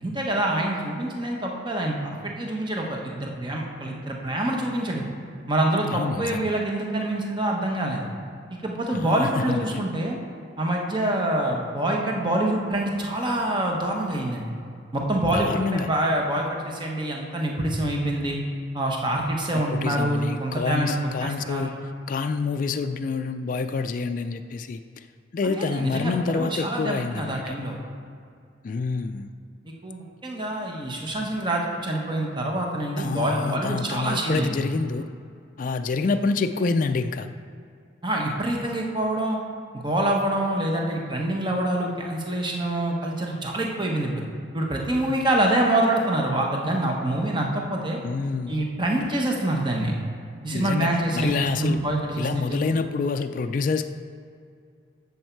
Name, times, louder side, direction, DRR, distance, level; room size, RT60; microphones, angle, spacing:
voice 1, 0.0-5.0 5.5-8.0 8.5-10.2 10.6-14.5 14.9-18.4 18.7-21.8 25.4-27.8 29.6-34.6 38.0-39.4 39.7-44.2 44.5-48.0 48.5-49.9 50.4-52.7, right 1 dB, 25° right, 0 dB, 1.1 m, -26 dB
voice 2, 5.9-6.5 8.9-9.8 15.3-15.9 19.7-21.7 22.1-24.8 25.3-27.5 28.6-29.3 33.0-35.0 35.6-37.3 48.0-48.6 50.5-51.8 52.2-53.8, left 4 dB, 45° left, 7 dB, 0.3 m, -27 dB
10.5 x 7.2 x 4.5 m, 2.4 s
head